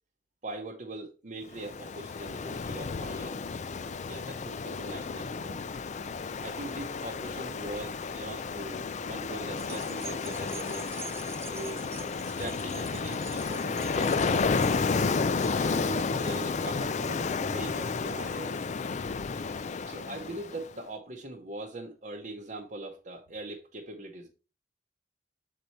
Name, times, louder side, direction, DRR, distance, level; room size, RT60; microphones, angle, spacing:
voice 1, 0.4-3.4 4.1-5.6 6.4-11.1 11.5-11.8 12.2-14.5 15.5-18.6 19.9-24.3, right 2 dB, 45° right, 0 dB, 0.9 m, -41 dB
Ocean, 1.5-20.7, left 4 dB, 40° left, 0.4 m, -32 dB
sound 1, 9.5-18.2 18.7-18.8, right 5 dB, 15° right, 0.5 m, -47 dB
6.7 x 4.6 x 4.1 m, 0.33 s
head